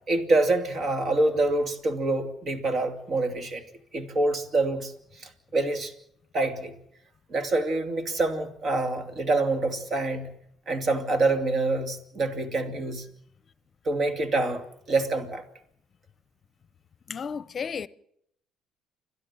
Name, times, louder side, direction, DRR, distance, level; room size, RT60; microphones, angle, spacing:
voice 1, 0.1-3.6 3.9-4.9 5.5-5.9 6.3-6.7 7.3-10.3 10.7-13.1 13.8-14.6 14.9-15.4, right 2 dB, 50° right, 2.7 m, -26 dB
voice 2, 17.1-17.9, left 6 dB, 45° left, 0.7 m, -33 dB
29.5 x 12.0 x 7.4 m
supercardioid pair, 70°, 0 cm